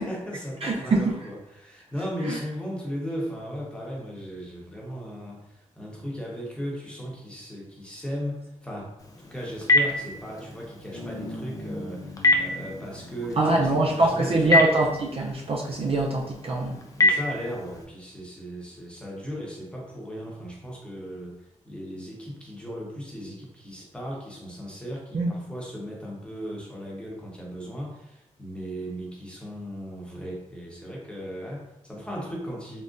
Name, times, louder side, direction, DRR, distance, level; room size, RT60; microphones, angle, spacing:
voice 1, 0.0-8.9 9.2-14.6 17.0-32.8, equal, 10° left, -4 dB, 0.9 m, -36 dB
voice 2, 0.6-1.1 2.3-2.4 13.4-16.8 25.1-25.3, right 2 dB, 45° right, -1 dB, 0.5 m, -23 dB
Telephone, 9.0-17.8, left 2 dB, 25° left, 0.5 m, -28 dB
sound 1, 10.9-16.7, left 1 dB, 80° left, 0.9 m, -42 dB
3.8 x 2.1 x 2.5 m, 0.89 s
cardioid pair, 80°, 13 cm